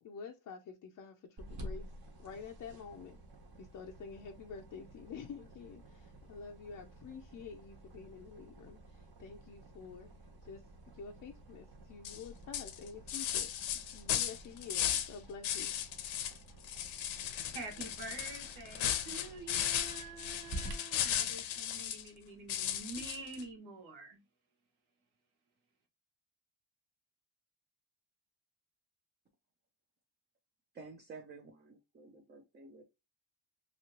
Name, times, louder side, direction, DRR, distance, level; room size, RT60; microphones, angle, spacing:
voice 1, 0.0-1.9 2.2-3.2 3.6-10.1 10.4-10.6 10.9-13.5 13.9-15.7, left 5 dB, 40° left, 0.4 m, -48 dB
sound 1, 1.4-20.7, right 1 dB, 55° right, 1.2 m, -51 dB
sound 2, 12.0-12.2 12.5-15.1 15.4-16.4 16.6-22.1 22.5-23.4, left 10 dB, 75° left, 0.7 m, -36 dB
voice 2, 17.1-24.2, right 3 dB, 90° right, 1.6 m, -47 dB
voice 3, 30.7-32.8, right 4 dB, 25° right, 0.4 m, -52 dB
3.0 x 2.8 x 2.8 m
cardioid pair, 130°, 47 cm